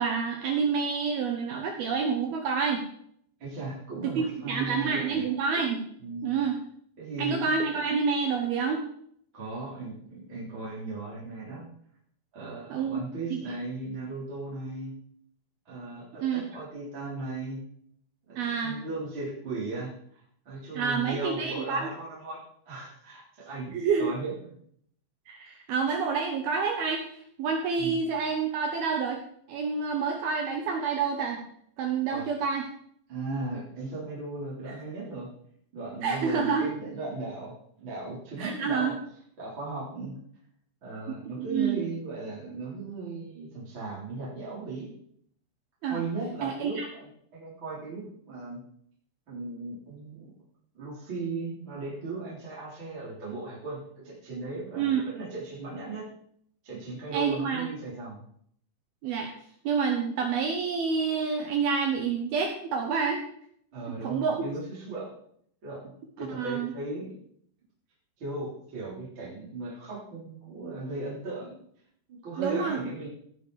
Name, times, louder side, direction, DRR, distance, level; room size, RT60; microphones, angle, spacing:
voice 1, 0.0-2.8 4.2-5.9 6.2-6.6 7.2-8.9 12.7-13.0 13.3-13.4 16.2-16.4 18.4-18.8 20.7-21.9 23.7-24.1 25.3-27.0 27.4-29.2 29.5-31.4 31.8-32.6 36.0-36.7 38.4-39.0 41.5-41.8 45.8-46.0 46.4-46.9 54.8-55.0 57.1-57.7 59.0-59.3 59.6-63.2 63.9-64.4 66.3-66.7 72.4-72.8, right 5 dB, 75° right, 3 dB, 2.3 m, -28 dB
voice 2, 3.4-5.2 6.0-6.3 7.0-7.8 9.3-11.7 12.3-14.9 15.7-17.6 18.3-22.4 22.7-23.7 24.0-24.5 27.8-28.0 32.1-32.3 33.1-35.3 35.7-37.5 37.8-38.9 39.4-40.1 40.8-44.9 45.8-48.6 49.3-50.3 50.7-56.1 56.6-58.2 63.7-65.1 65.6-65.9 66.2-67.1 68.2-71.6 72.1-73.1, right 3 dB, 25° right, -7 dB, 3.8 m, -37 dB
18.0 x 6.7 x 4.9 m, 0.66 s
omnidirectional pair, 5.9 m